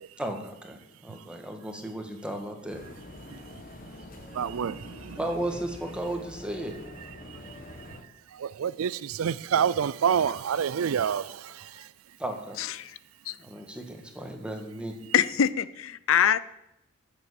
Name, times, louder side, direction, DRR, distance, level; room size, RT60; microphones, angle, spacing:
voice 1, 0.2-2.8 5.1-6.7 12.2-12.6 13.4-14.9, right 1 dB, 5° right, 1.6 m, -35 dB
sound 1, 2.7-8.0, left 1 dB, 45° left, 1.5 m, -45 dB
voice 2, 4.3-5.2 8.3-11.7, right 7 dB, 85° right, 0.4 m, -28 dB
voice 3, 12.6-13.0 13.2-13.4 15.1-16.4, left 8 dB, 70° left, 0.5 m, -24 dB
10.5 x 7.3 x 8.3 m
head